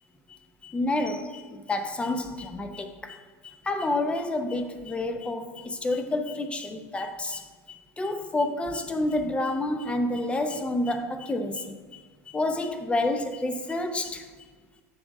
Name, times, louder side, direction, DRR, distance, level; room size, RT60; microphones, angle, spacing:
voice 1, 0.6-7.4 7.7-12.0 12.3-14.3, left 2 dB, 15° left, 0.7 m, -29 dB
7.9 x 3.5 x 6.1 m
hypercardioid pair, 90°, 8 cm